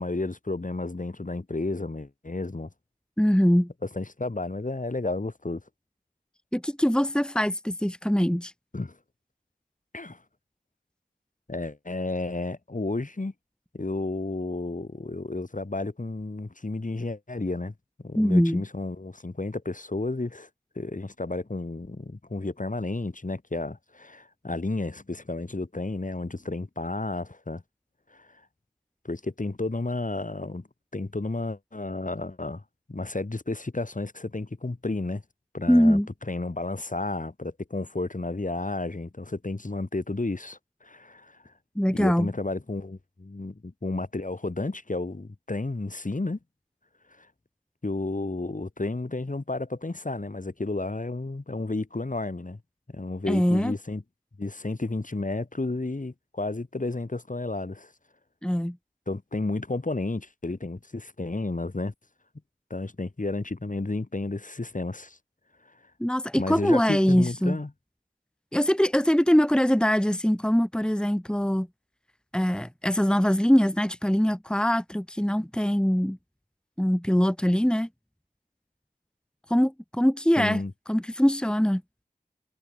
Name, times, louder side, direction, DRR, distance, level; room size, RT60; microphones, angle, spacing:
voice 1, 0.0-2.7 3.9-5.6 8.7-9.0 9.9-10.2 11.5-13.3 13.7-17.7 18.0-20.5 20.8-27.6 28.1-28.3 29.0-30.7 30.9-32.6 32.9-35.2 35.5-36.0 36.3-41.5 42.0-46.4 47.2-47.3 47.8-52.6 52.9-54.0 54.4-57.9 59.1-61.9 62.7-65.2 66.4-67.7 80.4-80.7, left 2 dB, 50° left, 5.2 m, -32 dB
voice 2, 3.2-3.7 6.5-8.5 18.2-18.6 35.7-36.1 41.8-42.3 53.3-53.8 58.4-58.8 66.0-67.6 68.5-71.7 72.3-76.2 76.8-77.9 79.5-80.6 80.9-81.8, equal, 5° left, 1.8 m, -23 dB
wide cardioid pair, 55°, 17 cm